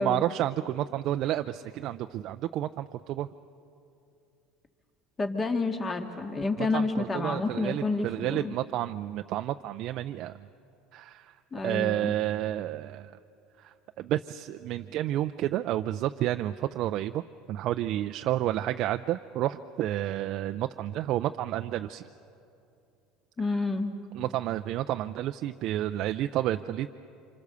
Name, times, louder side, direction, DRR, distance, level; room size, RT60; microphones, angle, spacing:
voice 1, 0.0-3.3 6.6-10.5 10.9-11.3 11.6-13.1 13.6-17.2 17.5-22.1 24.1-26.9, right 13 dB, 60° right, 7 dB, 0.5 m, -30 dB
voice 2, 5.2-8.6 11.5-12.1 23.4-23.9, left 3 dB, 25° left, 5 dB, 1.9 m, -29 dB
27.0 x 26.0 x 6.9 m, 2.7 s
supercardioid pair, 105°, 0 cm